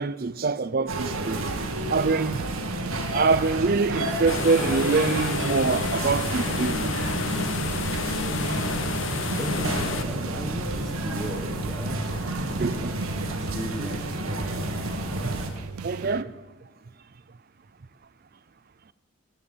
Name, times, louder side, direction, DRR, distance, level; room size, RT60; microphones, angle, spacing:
voice 1, 0.0-1.4 1.9-2.4 3.1-7.0 12.6-12.9 15.2-15.3 15.8-16.3, right 4 dB, 45° right, 0.5 m, -25 dB
sound 1, 0.9-15.5, right 1 dB, 70° right, 1.8 m, -30 dB
sound 2, 0.9-16.2, right 5 dB, 90° right, 0.6 m, -38 dB
sound 3, 4.3-10.0, left 5 dB, 60° left, 0.8 m, -31 dB
voice 2, 9.4-12.9 13.2-14.9, equal, ahead, 1.2 m, -38 dB
19.0 x 7.8 x 8.3 m
head